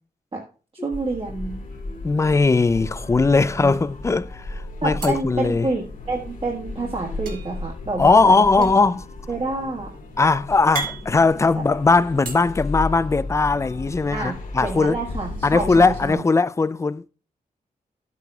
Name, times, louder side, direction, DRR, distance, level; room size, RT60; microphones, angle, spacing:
voice 1, 0.8-1.6 3.5-3.8 4.8-8.7 9.3-9.9 11.5-11.6 14.1-16.2, right 3 dB, 35° right, 1.4 m, -28 dB
sound 1, 0.9-16.1, left 2 dB, 60° left, 2.4 m, -35 dB
sound 2, 1.7-2.6 2.9-3.1 3.3-4.1 5.0-6.3 7.2-12.3, right 4 dB, 75° right, 2.2 m, -37 dB
voice 2, 2.0-5.7 8.0-9.0 10.2-15.0 15.4-17.1, left 3 dB, 20° left, 0.3 m, -19 dB
12.0 x 8.2 x 2.3 m
wide cardioid pair, 90°, 15 cm